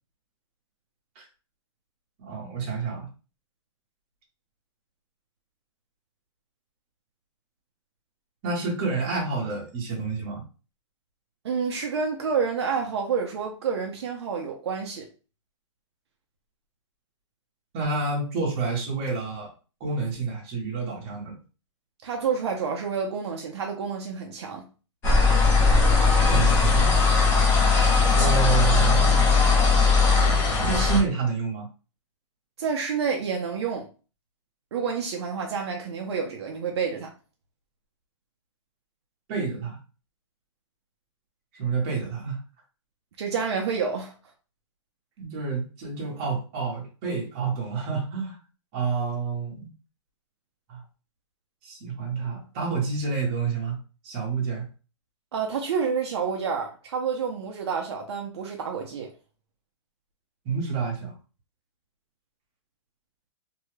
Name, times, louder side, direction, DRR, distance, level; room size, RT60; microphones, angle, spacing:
voice 1, 2.2-3.1 8.4-10.4 17.7-19.5 19.8-21.4 26.3-27.0 28.1-29.4 30.6-31.7 39.3-39.8 41.5-42.4 45.2-48.4 48.7-49.7 50.7-50.8 51.6-53.8 54.0-54.7 60.4-61.1, right 4 dB, 25° right, 0.9 m, -29 dB
voice 2, 11.4-15.1 22.0-24.6 32.6-33.9 34.7-37.1 43.2-44.1 55.3-59.1, right 6 dB, 60° right, 0.6 m, -29 dB
sound 1, 25.0-31.0, left 4 dB, 15° left, 0.5 m, -19 dB
2.7 x 2.2 x 3.1 m
hypercardioid pair, 175°, 16 cm